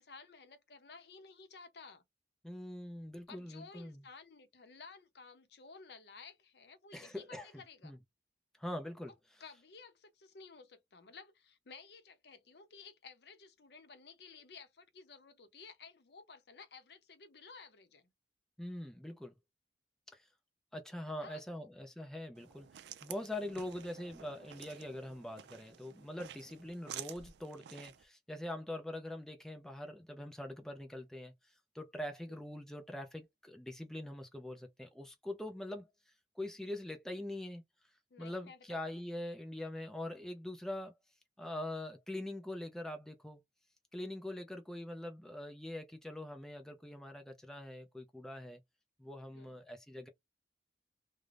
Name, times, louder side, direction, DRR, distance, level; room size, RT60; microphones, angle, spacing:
voice 1, 0.0-2.0 3.3-8.0 9.4-18.1 21.2-21.7 23.8-23.9 32.3-32.4 38.1-39.0 49.3-49.6, left 4 dB, 65° left, 0.6 m, -55 dB
voice 2, 2.4-4.0 6.9-7.5 7.8-8.0 8.6-9.1 18.6-19.4 20.1-20.3 20.7-22.7 23.0-31.3 31.7-35.9 36.4-37.6 38.2-40.9 41.4-43.4 43.9-48.6 49.0-50.1, left 1 dB, 5° left, 0.3 m, -43 dB
sound 1, 22.3-28.0, right 10 dB, 75° right, 0.3 m, -51 dB
2.4 x 2.0 x 3.2 m
head